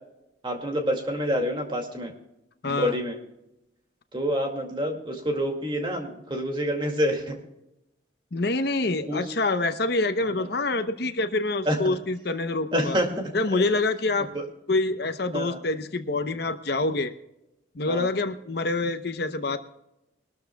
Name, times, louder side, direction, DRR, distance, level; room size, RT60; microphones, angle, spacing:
voice 1, 0.4-2.1 2.6-3.2 4.1-7.4 9.1-9.3 10.4-10.5 11.7-12.0 12.7-13.7 14.3-14.4 15.3-15.6 17.9-18.1, equal, 25° right, 2 dB, 2.2 m, -27 dB
voice 2, 2.6-2.9 8.3-13.0 13.3-14.3 14.7-17.1 17.7-19.6, left 2 dB, 55° left, 9 dB, 0.8 m, -26 dB
23.0 x 13.0 x 2.3 m, 0.90 s
head